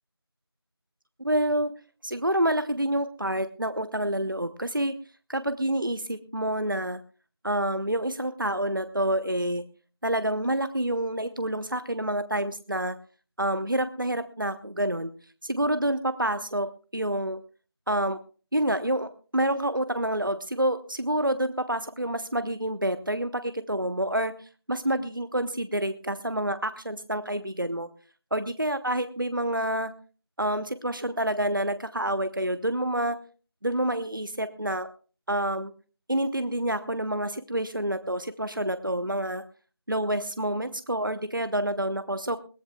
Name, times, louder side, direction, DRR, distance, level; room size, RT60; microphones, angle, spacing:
voice 1, 1.2-1.7 2.0-4.9 5.3-7.0 7.4-9.6 10.0-13.0 13.4-15.1 15.4-16.7 16.9-17.4 17.9-18.2 18.5-27.9 28.3-29.9 30.4-33.2 33.6-34.9 35.3-35.7 36.1-39.4 39.9-42.4, right 1 dB, 55° right, 11 dB, 0.8 m, -28 dB
21.5 x 17.0 x 2.3 m, 0.38 s
figure-of-eight pair, 180°, 14 cm